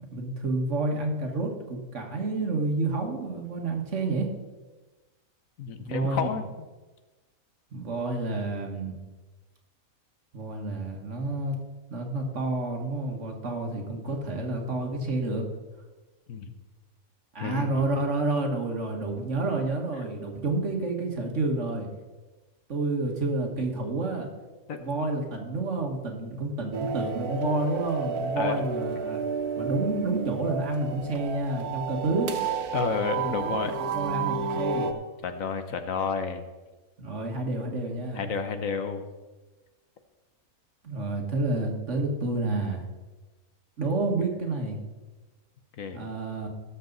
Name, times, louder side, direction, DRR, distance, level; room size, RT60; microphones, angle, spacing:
voice 1, 0.1-4.3 5.8-6.3 7.7-9.0 10.3-11.5 11.9-15.5 17.3-21.9 22.7-24.3 24.8-29.2 29.6-32.4 33.1-34.9 37.0-38.3 40.8-42.9 43.8-44.8 45.9-46.5, right 2 dB, 55° right, 2 dB, 1.8 m, -29 dB
voice 2, 5.6-6.4 16.3-16.5 17.4-17.8 24.7-24.8 28.4-28.6 32.7-33.8 35.2-36.4 38.1-39.0 45.8-46.0, left 5 dB, 65° left, 8 dB, 1.3 m, -30 dB
sound 1, 26.7-34.9, right 5 dB, 90° right, 1.5 m, -31 dB
18.0 x 7.0 x 4.0 m, 1.2 s
omnidirectional pair, 1.5 m